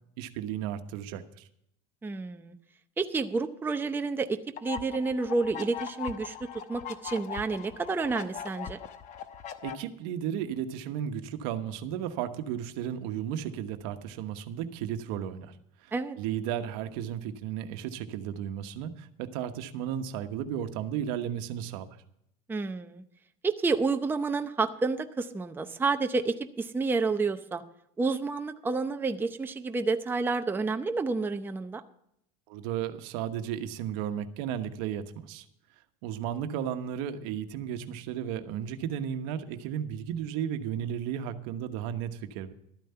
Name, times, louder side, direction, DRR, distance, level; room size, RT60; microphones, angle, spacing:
voice 1, 0.2-1.5 9.6-15.5 15.8-22.0 32.5-35.4 36.0-42.5, right 9 dB, 70° right, 8 dB, 1.2 m, -34 dB
voice 2, 2.0-2.6 3.0-8.8 15.9-16.2 22.5-23.0 23.4-27.6 28.0-31.8, right 4 dB, 10° right, 6 dB, 0.7 m, -30 dB
sound 1, 4.6-9.7, left 8 dB, 40° left, 1.0 m, -40 dB
12.5 x 9.2 x 5.6 m, 0.74 s
supercardioid pair, 125°, 19 cm